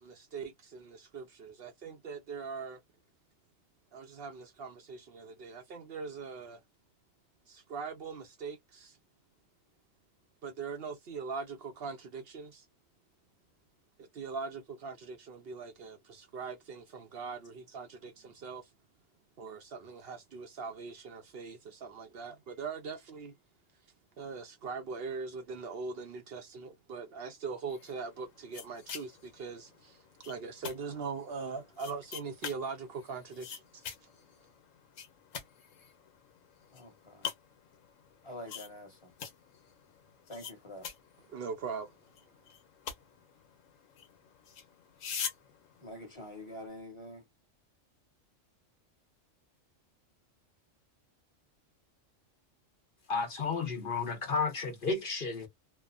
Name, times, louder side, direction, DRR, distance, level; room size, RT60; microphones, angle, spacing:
voice 1, 0.0-2.8 3.9-6.6 7.5-9.0 10.4-12.6 14.0-18.7 19.4-23.3 24.2-33.8 41.3-41.9, right 5 dB, 60° right, 0.7 m, -41 dB
sound 1, 27.7-46.7, left 7 dB, 85° left, 1.1 m, -46 dB
voice 2, 36.7-37.3 38.2-39.1 40.3-40.9 45.8-47.2, left 1 dB, 25° left, 1.0 m, -46 dB
voice 3, 53.1-55.5, left 4 dB, 50° left, 0.9 m, -32 dB
2.8 x 2.0 x 2.4 m
omnidirectional pair, 1.3 m